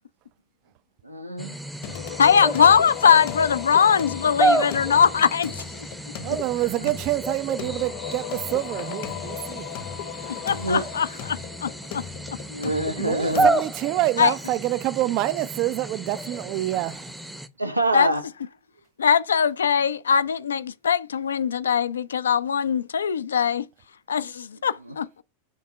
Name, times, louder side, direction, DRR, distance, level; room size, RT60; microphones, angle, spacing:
voice 1, 1.0-1.6 10.6-10.8 12.5-13.5 17.6-18.2, right 1 dB, 85° right, 0.7 m, -25 dB
sound 1, 1.4-17.5, right 2 dB, 5° right, 0.7 m, -31 dB
Singing, 1.8-13.5, left 10 dB, 45° left, 0.8 m, -36 dB
voice 2, 2.2-5.5 10.5-12.0 14.2-14.3 17.9-18.1 19.0-23.6 24.1-25.2, left 7 dB, 70° left, 0.4 m, -21 dB
voice 3, 6.2-9.7 13.0-17.1, right 16 dB, 40° right, 0.4 m, -27 dB
6.0 x 3.6 x 5.2 m
figure-of-eight pair, 90°, 0 cm